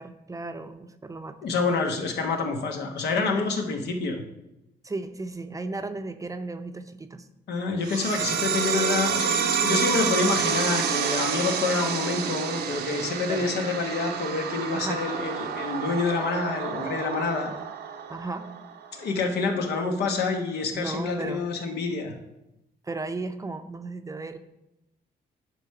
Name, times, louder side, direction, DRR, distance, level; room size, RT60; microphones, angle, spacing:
voice 1, 0.0-1.4 4.8-7.3 13.3-13.5 14.7-15.0 18.1-18.5 20.7-21.4 22.8-24.4, right 3 dB, 20° right, 9 dB, 0.5 m, -35 dB
voice 2, 1.4-4.2 7.5-17.5 18.9-22.1, left 4 dB, 85° left, 4 dB, 1.2 m, -27 dB
sound 1, 7.8-18.9, right 7 dB, 85° right, 0.7 m, -29 dB
9.9 x 3.4 x 5.5 m, 0.90 s
cardioid pair, 100°, 17 cm